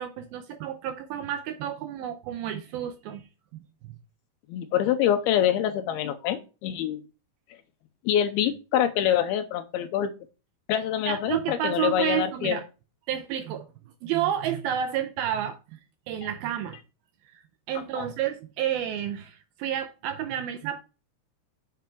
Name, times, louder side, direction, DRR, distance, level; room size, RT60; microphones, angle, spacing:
voice 1, 0.0-3.3 3.5-3.6 11.1-12.6 13.1-13.7 14.0-15.8 16.1-16.8 17.3-17.4 17.7-20.8, right 10 dB, 80° right, 2.2 m, -30 dB
voice 2, 4.5-7.0 8.1-10.1 10.7-12.6 18.0-18.1, left 10 dB, 80° left, 2.4 m, -25 dB
7.6 x 5.2 x 4.5 m
omnidirectional pair, 4.9 m